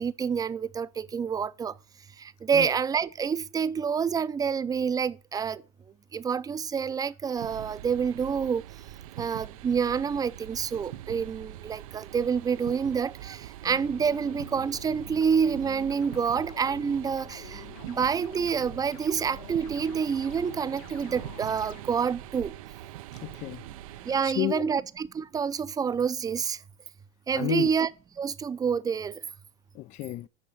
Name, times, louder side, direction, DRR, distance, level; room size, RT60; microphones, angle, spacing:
voice 1, 0.0-1.7 2.4-5.6 6.1-8.6 9.2-22.5 24.1-26.6 27.3-27.9 28.2-29.2, right 6 dB, 20° right, 0.5 m, -28 dB
sound 1, 7.3-24.2, right 14 dB, 80° right, 0.5 m, -43 dB
sound 2, 13.6-21.8, left 13 dB, 80° left, 0.8 m, -48 dB
voice 2, 23.1-23.6 24.2-24.8 27.3-27.7 29.7-30.3, left 17 dB, 40° left, 0.4 m, -31 dB
8.7 x 6.0 x 7.3 m
supercardioid pair, 110°, 18 cm